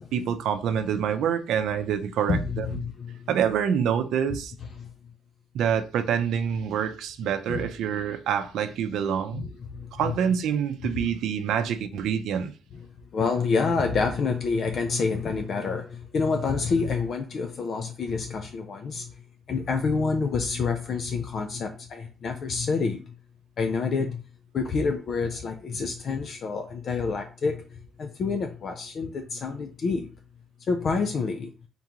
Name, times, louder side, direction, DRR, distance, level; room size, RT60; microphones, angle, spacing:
voice 1, 0.1-2.8 3.3-4.5 5.5-9.4 9.9-12.5, right 8 dB, 80° right, 0.5 m, -26 dB
voice 2, 2.3-3.3 4.8-4.9 7.5-7.6 9.3-10.1 11.0-11.1 13.1-19.1 19.5-23.1 23.6-24.2 24.5-30.1 30.7-31.5, left 4 dB, 55° left, 0.5 m, -28 dB
3.7 x 3.6 x 2.9 m
cardioid pair, 90°, 0 cm